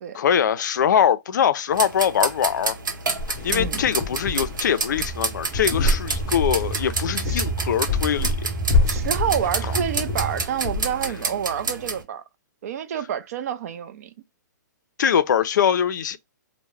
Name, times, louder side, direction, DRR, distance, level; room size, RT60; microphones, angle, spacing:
voice 1, 0.1-2.8 3.4-8.4 9.6-9.8 15.0-16.2, left 8 dB, 70° left, 0.4 m, -22 dB
sound 1, 1.7-12.0, right 4 dB, 85° right, 0.8 m, -30 dB
sound 2, 3.2-11.1, left 3 dB, 25° left, 0.7 m, -27 dB
voice 2, 3.5-3.8 7.2-7.4 8.9-12.2 12.6-14.1, right 9 dB, 50° right, 0.4 m, -28 dB
sound 3, 5.0-10.4, right 4 dB, 20° right, 0.9 m, -31 dB
2.2 x 2.0 x 3.0 m
hypercardioid pair, 150°, 10 cm